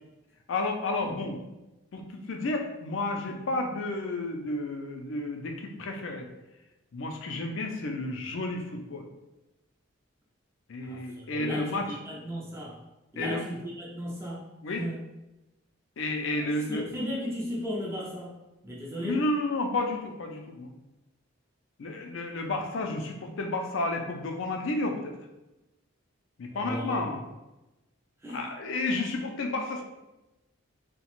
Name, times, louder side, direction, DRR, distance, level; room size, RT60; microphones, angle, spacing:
voice 1, 0.5-1.4 1.9-2.0 2.3-6.3 6.9-9.1 10.7-11.8 13.2-13.4 14.6-14.8 16.0-16.8 19.0-20.7 21.8-25.1 26.4-27.2 28.3-29.8, left 2 dB, 65° left, 3 dB, 0.4 m, -31 dB
voice 2, 10.8-12.8 13.1-14.5 14.8-15.0 16.3-19.2 26.5-27.0 28.2-28.5, equal, 10° right, -5 dB, 0.5 m, -36 dB
2.8 x 2.1 x 2.9 m, 0.98 s
head